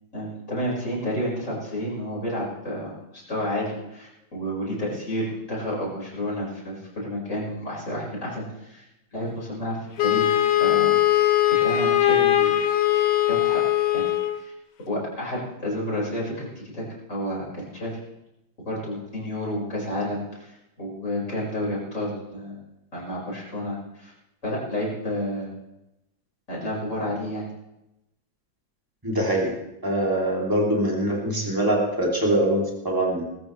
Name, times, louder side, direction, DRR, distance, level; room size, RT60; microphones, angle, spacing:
voice 1, 0.1-8.8 9.1-11.2 11.6-12.6 13.3-13.6 13.9-14.1 14.3-14.5 14.9-18.0 18.7-20.5 20.8-22.6 22.9-24.1 24.4-25.5 26.5-27.4, equal, 35° left, -5 dB, 5.7 m, -30 dB
Wind instrument woodwind instrument, 10.0-14.4, left 12 dB, 65° left, 1.5 m, -20 dB
voice 2, 29.0-29.5 29.8-33.2, right 1 dB, 10° right, -2 dB, 3.0 m, -23 dB
20.5 x 13.5 x 3.3 m, 0.90 s
omnidirectional pair, 2.1 m